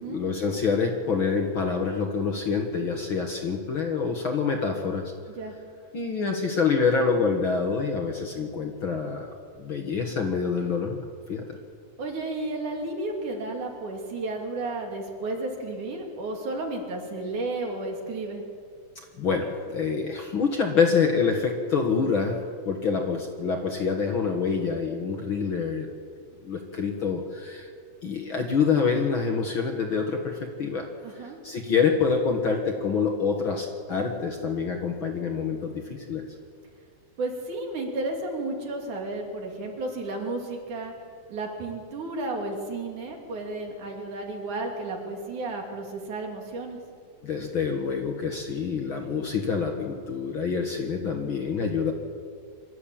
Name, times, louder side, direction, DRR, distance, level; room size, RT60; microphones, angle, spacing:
voice 1, 0.1-5.1 5.9-9.3 9.6-11.0 11.3-11.5 19.2-22.4 22.7-25.9 26.4-27.7 28.0-30.9 31.4-36.2 47.2-51.9, left 5 dB, 50° left, 3 dB, 1.8 m, -26 dB
voice 2, 12.0-18.4 31.0-31.4 37.2-40.9 41.3-46.8, right 2 dB, 70° right, 1 dB, 4.2 m, -32 dB
24.5 x 13.0 x 8.7 m, 2.1 s
omnidirectional pair, 3.7 m